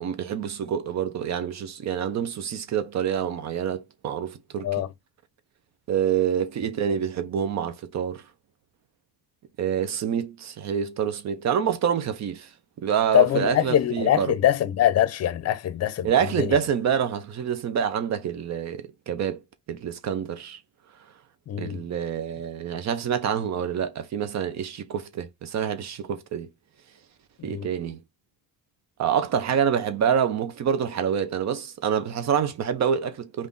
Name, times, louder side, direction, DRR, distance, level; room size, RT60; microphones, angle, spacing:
voice 1, 0.0-4.8 5.9-8.2 9.6-12.5 12.8-14.3 16.0-19.4 19.7-20.6 21.6-26.5 27.4-28.0 29.0-33.5, right 8 dB, 55° right, 0.6 m, -27 dB
voice 2, 13.1-16.1 16.4-16.6 21.5-21.8 27.4-27.7, left 12 dB, 45° left, 0.6 m, -23 dB
3.4 x 2.5 x 3.8 m
cardioid pair, 125°, 34 cm